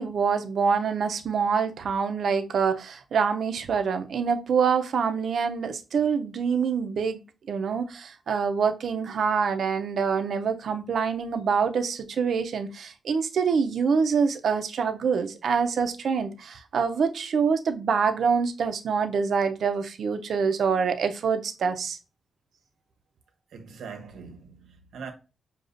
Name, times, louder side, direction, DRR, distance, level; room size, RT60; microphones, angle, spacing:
voice 1, 0.0-7.2 7.5-22.0, right 6 dB, 70° right, 0.5 m, -25 dB
voice 2, 23.5-25.1, right 5 dB, 90° right, 0.9 m, -42 dB
6.4 x 2.3 x 2.5 m
cardioid pair, 105°, 0 cm